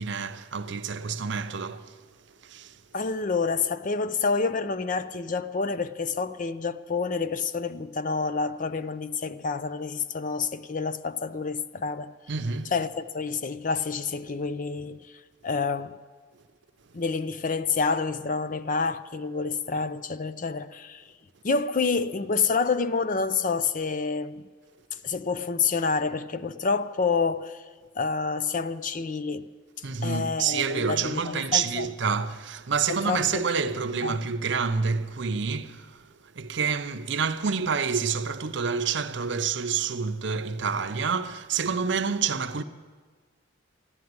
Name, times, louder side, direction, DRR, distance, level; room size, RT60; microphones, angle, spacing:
voice 1, 0.0-2.0 2.4-2.8 12.3-12.7 29.8-36.0 36.3-42.6, right 5 dB, 60° right, 0.7 m, -28 dB
voice 2, 2.9-12.1 12.7-15.0 15.4-16.0 16.9-21.0 21.4-24.5 25.0-27.6 28.0-29.5 30.0-31.9 32.9-33.7 34.0-34.2, left 4 dB, 40° left, 0.5 m, -28 dB
14.0 x 11.0 x 9.4 m
head